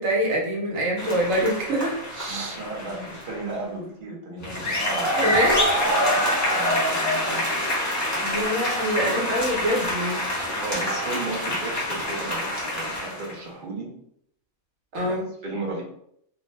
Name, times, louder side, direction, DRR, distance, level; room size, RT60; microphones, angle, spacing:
voice 1, 0.0-2.5 5.2-5.6 8.2-10.3 14.9-15.2, equal, 70° right, -2 dB, 1.2 m, -25 dB
sound 1, 1.0-3.4 4.4-13.3, left 1 dB, 20° left, 0.6 m, -26 dB
voice 2, 2.3-5.4 6.5-7.5 10.6-13.9 15.0-15.8, right 2 dB, 50° right, -2 dB, 0.7 m, -35 dB
2.6 x 2.2 x 3.1 m, 0.70 s
omnidirectional pair, 1.5 m